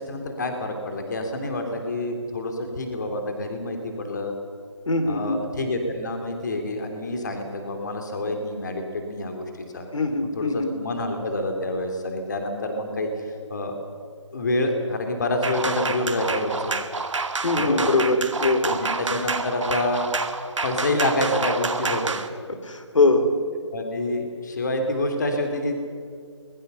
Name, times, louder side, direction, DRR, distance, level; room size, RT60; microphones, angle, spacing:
voice 1, 0.0-4.3 5.1-9.4 9.7-9.9 10.4-13.1 13.5-13.8 14.3-16.7 17.5-17.9 18.7-20.1 20.6-22.1 23.7-25.8, left 1 dB, 35° left, 4 dB, 3.0 m, -27 dB
voice 2, 4.9-5.4 9.9-10.7 17.4-18.8 22.5-23.3, left 3 dB, 85° left, 7 dB, 3.2 m, -22 dB
sound 1, 15.4-22.3, right 4 dB, 75° right, 1.8 m, -28 dB
24.0 x 20.5 x 6.8 m, 2.1 s
hypercardioid pair, 175°, 16 cm